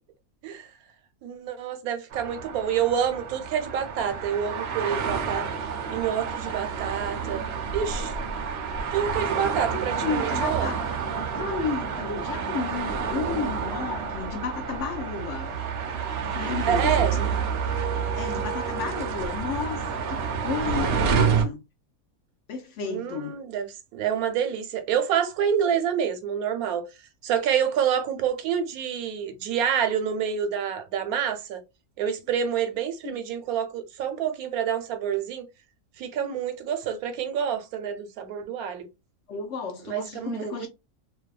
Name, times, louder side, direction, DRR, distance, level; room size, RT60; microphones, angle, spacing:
voice 1, 1.2-5.5 5.9-8.2 8.9-10.8 16.7-17.2 22.8-26.8 27.2-31.6 32.0-35.5 36.0-38.9 39.9-40.7, right 8 dB, 85° right, 1.1 m, -28 dB
sound 1, 2.1-21.4, right 6 dB, 65° right, 0.6 m, -29 dB
voice 2, 9.7-11.0 11.3-15.6 16.2-17.3 18.1-21.6 22.5-23.3 33.0-33.2 39.3-40.7, left 5 dB, 65° left, 0.8 m, -33 dB
2.7 x 2.2 x 2.3 m
omnidirectional pair, 1.5 m